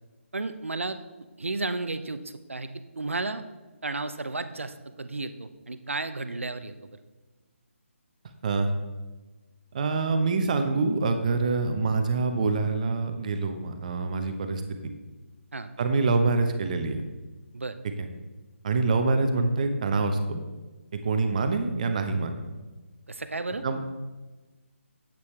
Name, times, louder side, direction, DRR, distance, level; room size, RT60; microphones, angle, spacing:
voice 1, 0.3-1.0 1.4-2.2 2.5-3.4 3.8-6.7 15.5-15.7 17.5-17.8 23.1-23.6, right 3 dB, 70° right, 11 dB, 0.7 m, -33 dB
voice 2, 9.7-14.6 15.8-17.0 18.0-18.1 18.6-20.4 20.9-22.4 23.6-23.8, right 3 dB, 35° right, 7 dB, 0.8 m, -25 dB
9.6 x 8.5 x 3.2 m, 1.2 s
figure-of-eight pair, 145°, 7 cm